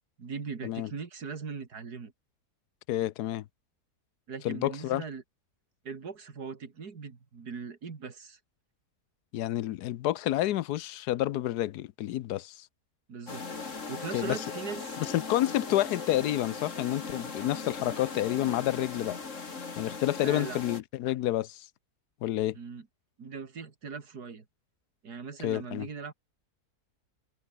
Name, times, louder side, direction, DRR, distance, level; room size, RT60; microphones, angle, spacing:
voice 1, 0.2-2.1 4.3-5.2 5.8-8.4 13.1-15.0 20.2-20.6 22.5-22.9 23.2-24.4 25.0-26.1, right 5 dB, 75° right, 2.9 m, -40 dB
voice 2, 2.9-3.4 4.4-5.0 9.3-12.7 14.1-14.4 15.0-19.2 19.8-21.7 22.2-22.6 25.4-25.9, left 14 dB, 85° left, 1.2 m, -29 dB
sound 1, 13.3-20.8, left 4 dB, 50° left, 2.7 m, -39 dB
omnidirectional pair, 1.7 m